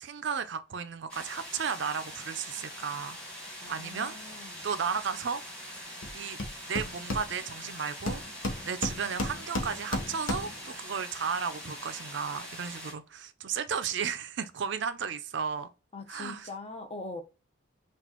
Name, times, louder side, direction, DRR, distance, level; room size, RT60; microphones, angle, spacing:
voice 1, 0.0-3.2 3.4-4.2 4.6-5.8 6.1-6.4 6.7-8.2 8.6-15.7 16.1-16.5, right 6 dB, 60° right, 0.5 m, -34 dB
sound 1, 1.1-12.9, equal, 5° left, 1.4 m, -43 dB
voice 2, 3.6-4.7 15.9-17.2, left 3 dB, 30° left, 0.7 m, -42 dB
Hammer, 6.0-6.1 6.4-7.7 8.1-10.7, left 1 dB, 80° left, 0.9 m, -34 dB
5.9 x 2.4 x 2.9 m
head